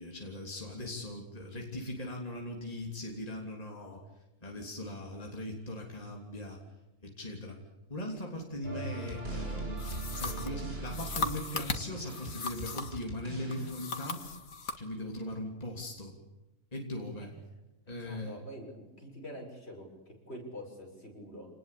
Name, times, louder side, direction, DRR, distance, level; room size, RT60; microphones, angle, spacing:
voice 1, 0.0-4.0 4.4-6.6 7.0-7.6 7.9-14.3 14.8-16.1 16.7-17.3 17.9-18.4, left 1 dB, 25° left, 0 dB, 3.4 m, -40 dB
sound 1, 8.6-13.7, right 3 dB, 45° right, 5.8 m, -40 dB
sound 2, 9.8-13.1 13.5-14.8, left 4 dB, 75° left, 2.2 m, -38 dB
voice 2, 17.9-21.5, equal, 45° left, 1 dB, 6.9 m, -46 dB
27.0 x 20.0 x 8.6 m, 1.0 s
omnidirectional pair, 1.5 m